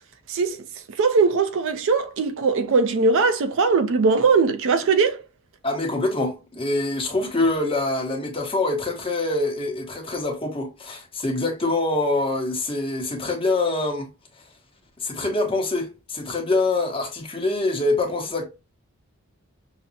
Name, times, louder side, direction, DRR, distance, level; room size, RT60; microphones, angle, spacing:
voice 1, 0.3-0.7 1.0-5.2, right 4 dB, 60° right, 0.4 m, -20 dB
voice 2, 5.6-14.1 15.0-18.4, left 2 dB, 25° left, 0.9 m, -25 dB
5.6 x 2.0 x 2.6 m
head